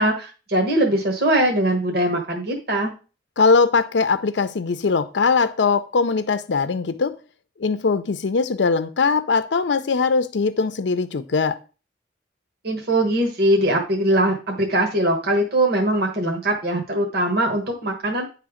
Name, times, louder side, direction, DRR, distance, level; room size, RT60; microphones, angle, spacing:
voice 1, 0.0-2.9 12.6-18.3, right 1 dB, 60° right, 1.3 m, -21 dB
voice 2, 3.4-7.1 7.6-11.6, left 4 dB, 80° left, 0.5 m, -21 dB
9.6 x 3.4 x 4.9 m
head